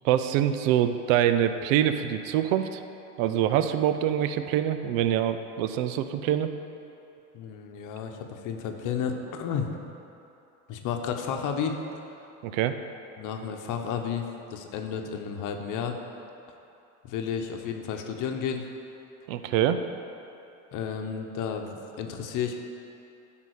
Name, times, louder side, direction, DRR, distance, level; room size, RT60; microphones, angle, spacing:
voice 1, 0.0-2.8 3.2-6.5 12.4-12.7 19.3-19.8, right 11 dB, 80° right, 9 dB, 0.6 m, -25 dB
voice 2, 7.3-9.7 10.7-11.8 13.2-16.0 17.0-18.6 20.7-22.6, left 7 dB, 55° left, 4 dB, 0.9 m, -32 dB
10.5 x 3.8 x 6.4 m, 2.8 s
supercardioid pair, 115°, 38 cm